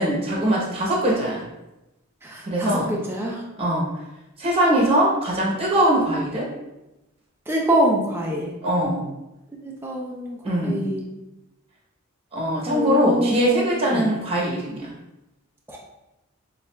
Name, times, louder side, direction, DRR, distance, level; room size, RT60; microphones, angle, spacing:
voice 1, 0.0-1.4 2.5-2.9 3.6-3.9 4.4-6.5 8.6-9.0 10.4-10.8 12.3-14.9, right 1 dB, 25° right, -4 dB, 0.9 m, -21 dB
voice 2, 2.2-3.4 7.5-8.5 9.8-11.0 12.6-14.0 15.7-15.8, right 1 dB, 10° right, -3 dB, 0.5 m, -25 dB
7.0 x 2.4 x 2.2 m, 0.96 s
head